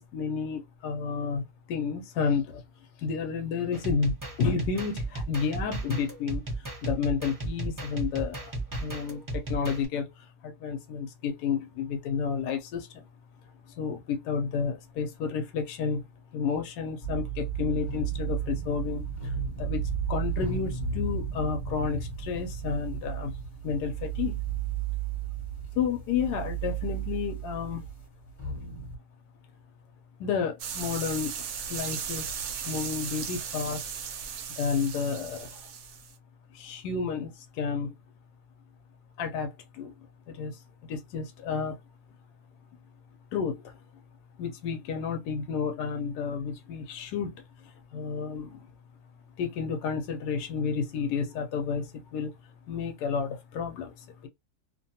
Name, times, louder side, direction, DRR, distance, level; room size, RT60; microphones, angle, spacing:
voice 1, 0.0-1.4 1.7-2.6 3.0-8.5 8.8-13.0 13.8-16.0 16.3-19.8 20.1-23.3 23.6-24.4 25.8-27.9 30.2-33.9 34.6-35.7 36.5-37.9 39.2-39.9 40.3-40.6 40.9-41.8 43.3-43.7 44.4-47.4 47.9-48.7 49.4-52.3 52.7-54.3, left 6 dB, 85° left, 1.1 m, -31 dB
sound 1, 3.7-9.9, right 2 dB, 20° right, 0.6 m, -35 dB
sound 2, 17.0-29.0, right 6 dB, 25° left, 0.7 m, -33 dB
sound 3, 30.6-36.1, right 7 dB, 75° right, 1.0 m, -36 dB
2.8 x 2.2 x 2.7 m
omnidirectional pair, 1.7 m